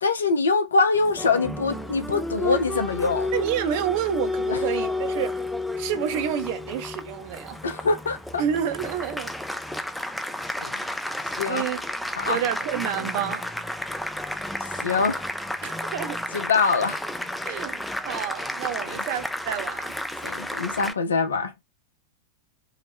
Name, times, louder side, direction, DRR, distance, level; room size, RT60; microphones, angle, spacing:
voice 1, 0.0-3.3 4.5-4.6 7.6-8.4 10.6-10.8 11.4-11.7 12.2-12.4 14.8-15.2 16.3-17.0 18.9-19.0 20.2-21.5, left 4 dB, 70° left, 0.4 m, -24 dB
Applause, 0.9-20.9, left 1 dB, 5° left, 0.3 m, -32 dB
voice 2, 3.3-5.4 5.8-7.6 8.4-9.3 11.5-11.8 12.3-13.5 15.6-16.2 17.4-19.9, right 9 dB, 50° right, 0.5 m, -29 dB
2.7 x 2.0 x 3.3 m
figure-of-eight pair, 90°, 0 cm